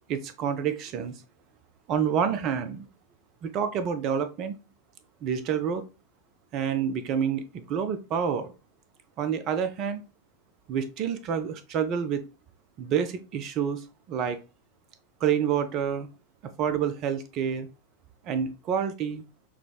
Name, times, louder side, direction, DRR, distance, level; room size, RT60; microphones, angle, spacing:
voice 1, 0.1-1.2 1.9-2.9 3.4-4.6 5.2-5.8 6.5-8.5 9.2-10.0 10.7-12.2 12.8-14.4 15.2-16.1 16.4-17.7 18.2-19.2, right 8 dB, 35° right, 11 dB, 0.5 m, -28 dB
5.7 x 2.0 x 2.3 m, 0.31 s
figure-of-eight pair, 90°, 0 cm